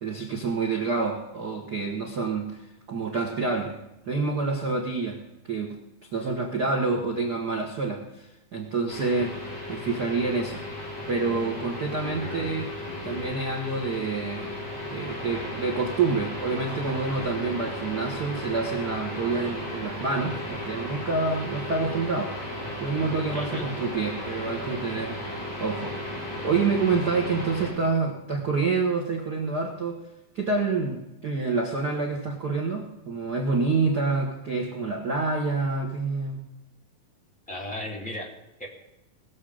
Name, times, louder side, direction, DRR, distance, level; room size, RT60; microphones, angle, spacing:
voice 1, 0.0-2.6 2.9-5.2 5.5-5.7 6.1-9.4 9.7-12.7 13.0-22.3 22.8-25.2 25.6-30.0 30.3-36.4, right 4 dB, 45° right, 0 dB, 1.2 m, -28 dB
sound 1, 8.9-27.7, left 1 dB, 45° left, 6.4 m, -35 dB
voice 2, 12.0-12.6 12.8-13.4 23.3-23.7 37.5-38.3 38.6-38.7, left 1 dB, 5° left, -3 dB, 1.9 m, -36 dB
21.0 x 7.5 x 5.0 m, 0.94 s
omnidirectional pair, 4.2 m